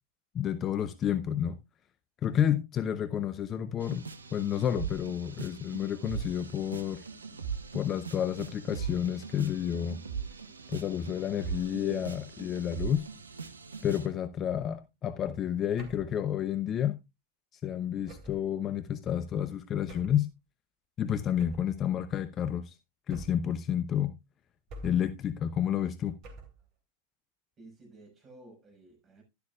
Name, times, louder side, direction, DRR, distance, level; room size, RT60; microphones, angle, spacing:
voice 1, 0.3-1.6 2.2-4.0 4.3-7.0 7.7-10.0 10.7-13.1 13.8-17.0 17.6-20.3 21.0-22.7 23.1-24.1 24.8-26.1, left 9 dB, 30° left, 0.7 m, -30 dB
sound 1, 3.8-14.1, right 6 dB, 75° right, 0.9 m, -40 dB
sound 2, 15.8-16.2 18.1-18.5 19.9-20.3 21.4-21.8 23.1-23.6 24.7-25.2 26.2-26.7, right 2 dB, 40° right, 2.9 m, -47 dB
voice 2, 27.6-29.2, right 2 dB, 20° right, 6.1 m, -53 dB
11.5 x 11.5 x 2.4 m
figure-of-eight pair, 90°, 0 cm